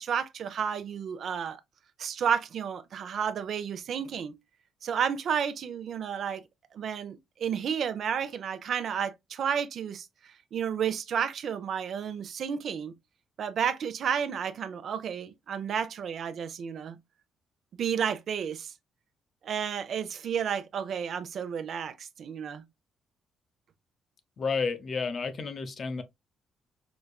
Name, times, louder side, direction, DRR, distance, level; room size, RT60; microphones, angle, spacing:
voice 1, 0.0-1.6 2.0-4.3 4.8-6.4 6.7-12.9 13.4-17.0 17.7-18.7 19.4-22.6, right 7 dB, 60° right, 0.5 m, -31 dB
voice 2, 24.4-26.0, left 4 dB, 45° left, 0.7 m, -31 dB
5.0 x 2.2 x 2.2 m
cardioid pair, 90°, 0 cm